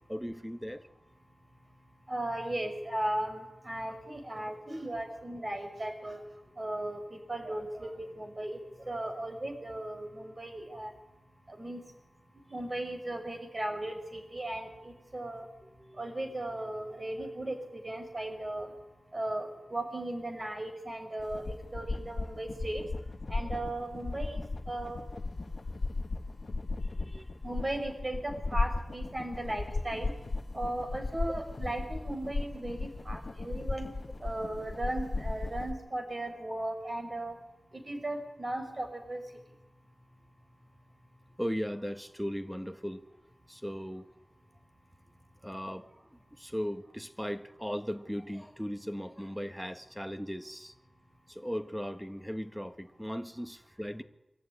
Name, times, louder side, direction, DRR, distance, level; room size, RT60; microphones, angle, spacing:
voice 1, 0.1-0.9 15.6-16.0 26.8-27.4 41.4-43.1 43.5-44.1 45.4-50.7 51.3-54.0, equal, ahead, 1.5 m, -38 dB
voice 2, 2.1-6.2 6.6-8.6 8.9-10.9 11.5-11.8 12.5-15.5 16.0-18.7 19.1-22.8 23.3-24.4 24.7-25.0 27.4-30.1 30.5-33.9 34.2-37.3 37.9-39.2, right 1 dB, 35° right, 5.8 m, -36 dB
sound 1, 21.2-35.7, left 3 dB, 60° left, 1.2 m, -36 dB
24.5 x 14.0 x 9.9 m
wide cardioid pair, 65°, 0 cm